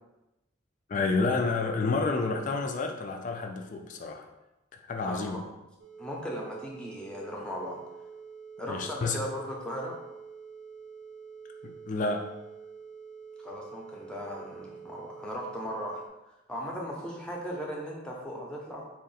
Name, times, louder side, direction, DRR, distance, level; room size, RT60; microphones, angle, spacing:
voice 1, 0.9-4.3 4.9-5.4 8.7-9.3 11.6-12.3, left 3 dB, 40° left, 4 dB, 0.4 m, -30 dB
voice 2, 5.0-5.4 6.0-7.8 8.6-9.9 13.4-16.0 16.5-18.9, equal, 5° left, -2 dB, 0.6 m, -37 dB
sound 1, 5.8-16.1, right 6 dB, 60° right, 0.5 m, -47 dB
3.7 x 2.5 x 3.9 m, 0.97 s
head